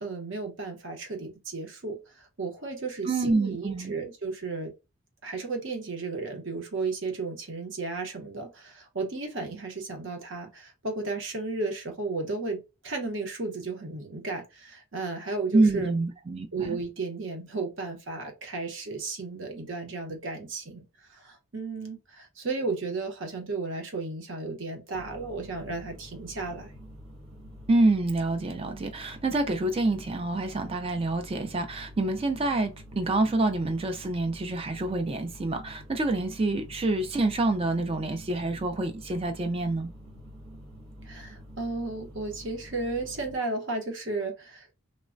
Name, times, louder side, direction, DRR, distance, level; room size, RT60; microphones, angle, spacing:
voice 1, 0.0-4.7 5.2-15.9 16.5-20.8 21.1-26.7 41.0-44.8, right 3 dB, 55° right, 0.8 m, -34 dB
voice 2, 3.1-3.9 15.5-16.8 27.7-39.9, right 2 dB, 25° right, 0.3 m, -27 dB
sound 1, 24.9-43.4, equal, 80° right, 1.3 m, -47 dB
3.1 x 2.1 x 2.4 m
head